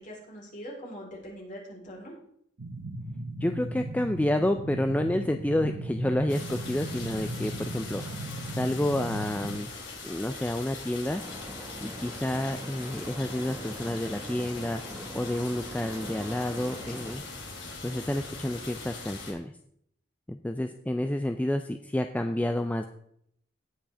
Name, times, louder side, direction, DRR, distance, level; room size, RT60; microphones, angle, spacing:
voice 1, 0.0-2.1, equal, 40° left, -3 dB, 3.7 m, -42 dB
sound 1, 2.6-9.6, right 1 dB, 75° right, 0.9 m, -37 dB
voice 2, 3.4-8.0 8.6-9.7 10.0-11.2 11.8-14.8 15.1-17.2 17.8-19.5 20.3-22.9, left 1 dB, 10° left, 7 dB, 0.3 m, -29 dB
sound 2, 6.3-19.3, left 3 dB, 75° left, 2.6 m, -41 dB
sound 3, 11.1-17.2, equal, 15° right, 1.4 m, -43 dB
17.5 x 6.2 x 3.4 m, 0.70 s
head